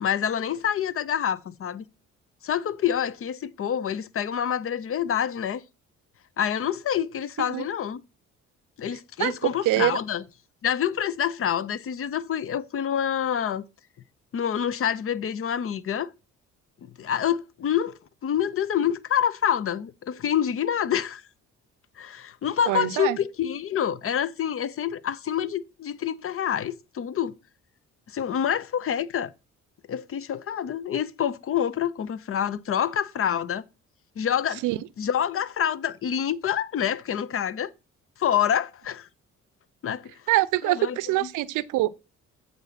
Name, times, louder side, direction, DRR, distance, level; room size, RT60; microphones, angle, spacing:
voice 1, 0.0-1.8 2.4-5.6 6.4-8.0 8.8-10.2 10.6-13.6 14.3-16.1 16.8-21.2 22.0-27.3 28.1-29.3 29.9-33.6 34.2-34.6 35.0-37.7 38.2-39.1 39.8-40.1 40.6-41.3, left 9 dB, 45° left, 0.6 m, -27 dB
voice 2, 9.7-10.0 22.7-23.2 34.6-34.8 40.3-41.9, right 17 dB, 90° right, 0.5 m, -24 dB
8.0 x 4.0 x 5.7 m
cardioid pair, 90°, 30 cm